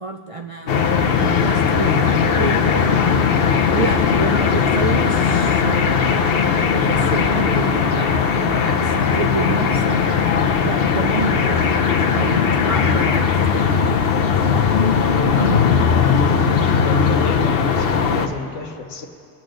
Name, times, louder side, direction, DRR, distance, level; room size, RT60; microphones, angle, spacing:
voice 1, 0.0-3.2 3.7-6.3 6.7-10.0 10.6-11.8 12.1-13.8 14.1-14.7 15.2-16.1, right 3 dB, 55° right, 3 dB, 0.3 m, -29 dB
sound 1, 0.7-18.3, left 6 dB, 55° left, 0.9 m, -18 dB
voice 2, 15.7-19.1, left 3 dB, 80° left, 5 dB, 1.3 m, -30 dB
22.5 x 8.2 x 3.9 m, 2.5 s
omnidirectional pair, 1.3 m